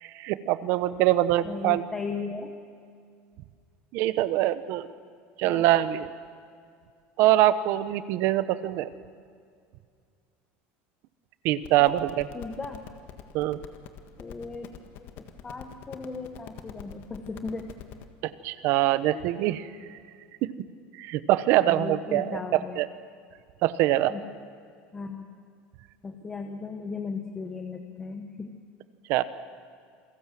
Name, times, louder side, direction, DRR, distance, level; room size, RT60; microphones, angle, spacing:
voice 1, 0.0-1.8 3.9-4.9 5.4-6.1 7.2-8.9 11.4-12.3 13.3-13.6 18.2-19.7 20.4-20.5 21.0-22.4 22.8-22.9 23.6-24.1 29.1-29.2, right 14 dB, 45° right, 14 dB, 1.0 m, -24 dB
voice 2, 1.4-2.5 5.4-5.6 11.8-11.9 12.3-12.9 14.2-17.8 19.1-19.3 21.5-22.8 24.1-24.3 24.9-25.3 26.0-28.6, left 4 dB, 10° left, 5 dB, 1.1 m, -37 dB
sound 1, 11.6-18.0, left 10 dB, 40° left, 1.6 m, -45 dB
28.5 x 22.5 x 7.6 m, 2.2 s
cardioid pair, 180°, 5 cm